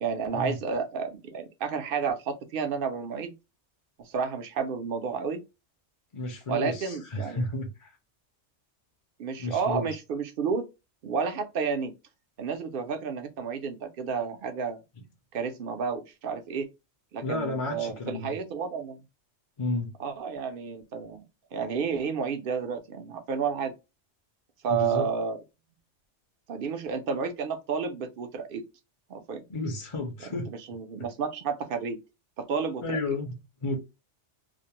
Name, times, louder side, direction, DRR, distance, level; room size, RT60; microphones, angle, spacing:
voice 1, 0.0-3.3 4.0-5.4 6.5-7.4 9.2-10.6 11.0-11.9 12.4-14.8 15.3-16.7 17.1-19.0 20.0-21.2 21.5-23.7 24.6-25.4 26.5-28.6 29.1-29.4 30.3-32.0 32.4-33.0, right 6 dB, 60° right, 0.6 m, -31 dB
voice 2, 6.1-8.0 9.4-10.0 15.0-15.1 17.2-18.3 19.6-19.9 24.7-25.1 29.5-30.5 32.8-33.8, left 2 dB, 40° left, 0.5 m, -32 dB
2.4 x 2.0 x 2.8 m
omnidirectional pair, 1.2 m